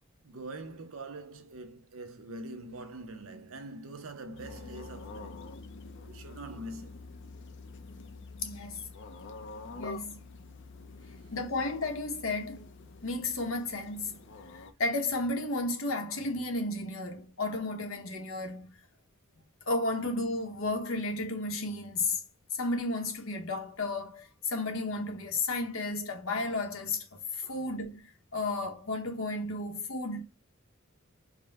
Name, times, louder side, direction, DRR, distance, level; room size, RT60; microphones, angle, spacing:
voice 1, 0.2-5.5 6.1-7.1 11.0-11.2 27.4-27.6, right 2 dB, 80° right, 0.8 m, -44 dB
sound 1, 4.4-14.7, left 3 dB, 60° left, 0.6 m, -47 dB
voice 2, 8.4-8.9 9.8-10.2 11.3-12.7 13.0-14.2 14.5-18.8 19.7-22.2 22.5-30.2, left 2 dB, 75° left, 1.1 m, -33 dB
4.8 x 2.2 x 3.5 m
head